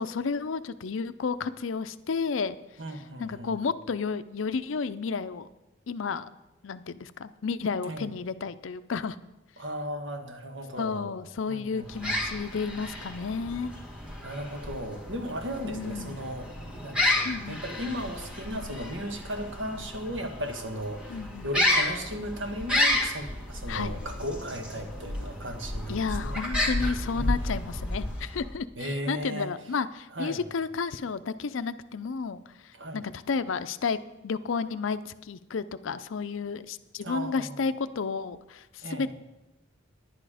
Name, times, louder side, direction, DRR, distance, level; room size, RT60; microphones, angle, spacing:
voice 1, 0.0-2.6 3.2-5.5 5.9-6.3 6.6-9.2 10.8-13.7 15.6-16.2 17.2-17.6 21.1-21.5 23.7-23.9 25.9-34.0 34.2-39.1, left 5 dB, 75° left, 13 dB, 0.5 m, -32 dB
voice 2, 2.8-3.6 7.8-8.1 9.6-11.1 11.5-12.2 14.2-16.5 16.8-26.0 26.2-26.4 27.1-27.5 28.8-29.5 30.1-30.4 32.7-33.0 37.0-37.6 38.8-39.1, equal, 65° right, 5 dB, 1.4 m, -36 dB
sound 1, 11.8-28.6, left 1 dB, 5° right, 1.6 m, -31 dB
10.5 x 10.0 x 4.9 m, 0.99 s
head